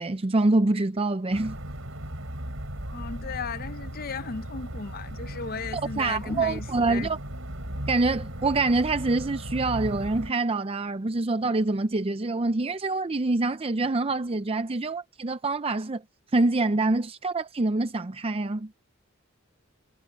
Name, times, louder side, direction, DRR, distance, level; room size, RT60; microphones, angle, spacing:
voice 1, 0.0-1.6 5.7-7.2 7.9-16.0 16.3-18.7, right 2 dB, 30° right, 0.5 m, -25 dB
sound 1, 1.3-10.3, equal, 70° right, 6.6 m, -36 dB
voice 2, 2.9-7.1, left 4 dB, 45° left, 0.7 m, -35 dB
head